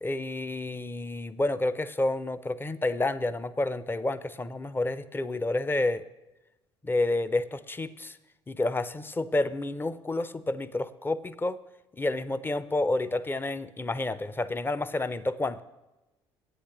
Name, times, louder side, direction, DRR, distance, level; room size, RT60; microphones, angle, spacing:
voice 1, 0.0-6.0 6.8-8.2 8.5-11.6 12.0-15.6, left 2 dB, 15° left, 14 dB, 0.5 m, -29 dB
8.5 x 8.1 x 5.9 m, 1.0 s
figure-of-eight pair, 55°, 15 cm